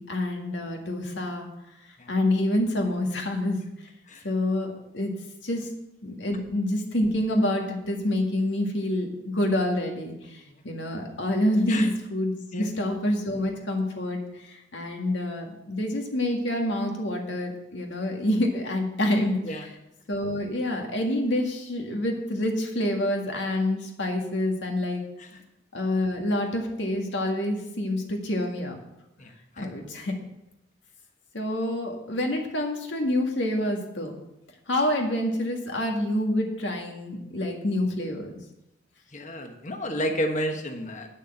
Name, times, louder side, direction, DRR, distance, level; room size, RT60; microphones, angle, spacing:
voice 1, 0.0-1.5 2.1-3.6 4.2-5.2 5.4-5.7 6.0-19.7 20.1-25.0 25.7-28.8 29.6-30.1 31.3-34.2 34.7-38.3, left 1 dB, 90° left, 2 dB, 1.9 m, -27 dB
voice 2, 29.2-29.7 33.5-33.6 39.1-41.1, equal, 45° left, 4 dB, 1.3 m, -31 dB
9.4 x 6.5 x 7.8 m, 0.90 s
head